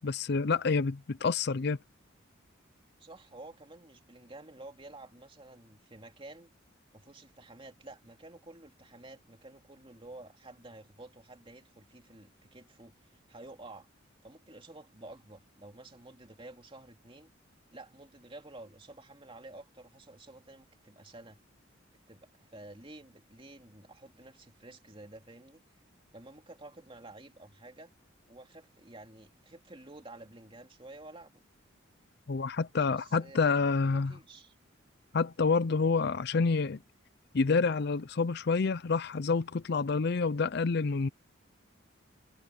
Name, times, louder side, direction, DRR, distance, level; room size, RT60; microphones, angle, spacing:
voice 1, 0.0-1.8 32.3-34.1 35.1-36.8 37.3-41.1, left 4 dB, 55° left, 0.5 m, -28 dB
voice 2, 3.0-6.5 6.9-13.9 14.2-17.3 17.7-21.4 22.1-25.6 26.1-27.9 28.3-31.3 32.9-34.5, right 2 dB, 25° right, 2.7 m, -51 dB
head